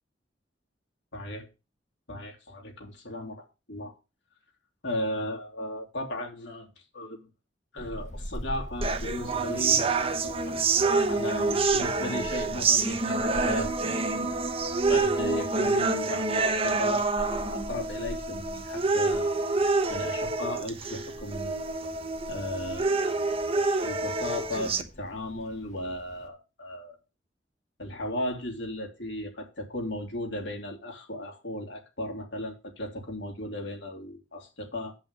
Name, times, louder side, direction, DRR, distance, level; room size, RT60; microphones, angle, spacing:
voice 1, 1.1-1.5 2.1-3.9 4.8-6.7 6.9-7.3 7.7-9.8 10.2-10.6 11.1-13.7 14.9-19.3 19.9-21.6 22.3-23.2 23.5-27.0 27.8-34.9, left 1 dB, 75° left, 3.0 m, -36 dB
Wind, 7.8-26.3, equal, 40° left, 1.7 m, -44 dB
sound 1, 8.8-24.8, right 3 dB, 30° right, 0.9 m, -27 dB
8.9 x 5.6 x 6.8 m
head